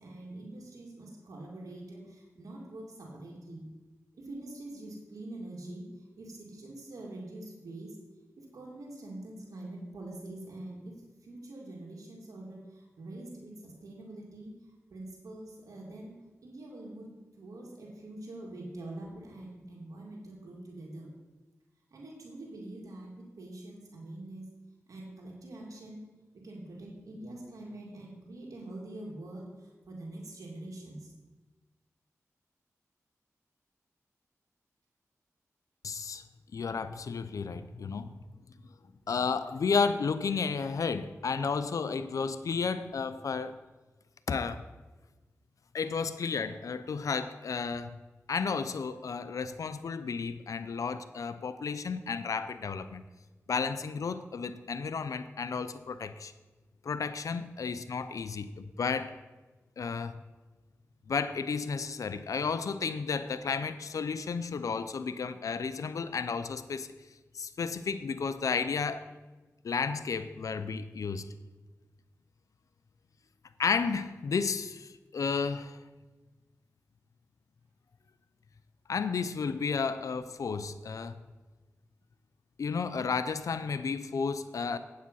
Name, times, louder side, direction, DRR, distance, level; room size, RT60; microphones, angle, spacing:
voice 1, 0.0-3.6 4.2-5.9 6.2-8.0 8.4-10.9 11.2-14.5 14.9-21.1 21.9-24.5 24.9-26.0 26.3-31.1, right 1 dB, 85° right, -2 dB, 2.4 m, -45 dB
voice 2, 35.8-36.2 36.5-38.1 39.1-43.6 44.3-44.7 45.7-48.0 48.3-53.0 53.5-56.3 56.8-59.2 59.8-60.2 61.1-66.9 67.3-69.0 69.6-71.2 73.6-75.8 78.9-81.2 82.6-84.8, left 5 dB, 80° left, 12 dB, 0.5 m, -32 dB
8.6 x 7.5 x 5.5 m, 1.2 s
cardioid pair, 45°, 6 cm